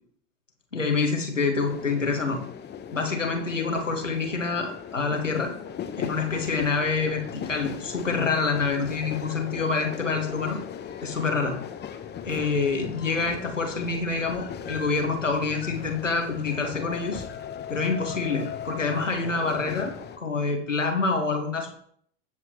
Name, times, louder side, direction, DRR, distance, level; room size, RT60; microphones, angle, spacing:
voice 1, 0.7-2.4 2.9-5.5 6.0-10.6 11.0-11.5 12.3-17.2 17.7-21.7, left 4 dB, 90° left, 3 dB, 1.9 m, -27 dB
sound 1, 1.6-20.2, left 8 dB, 30° left, 1.2 m, -38 dB
15.5 x 8.0 x 3.1 m, 0.64 s
figure-of-eight pair, 80°, 37 cm